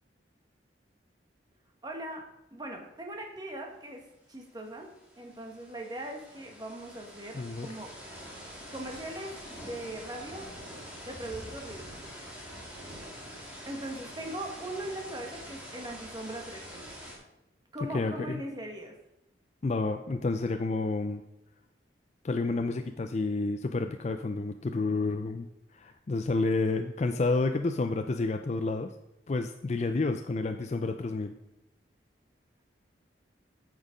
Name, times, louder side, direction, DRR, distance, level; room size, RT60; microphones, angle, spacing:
voice 1, 1.8-2.2 2.5-4.9 5.2-7.9 8.7-9.4 9.7-10.5 11.1-12.1 13.6-16.9 17.7-18.9, right 1 dB, 20° right, 2 dB, 1.4 m, -40 dB
sound 1, 4.2-4.3 4.6-17.2, equal, 5° right, 2.4 m, -45 dB
voice 2, 7.3-7.7 17.8-18.4 19.6-21.2 22.2-25.5 25.7-28.9 29.3-31.3, left 3 dB, 35° left, 7 dB, 0.4 m, -30 dB
9.0 x 6.3 x 5.1 m, 0.90 s
head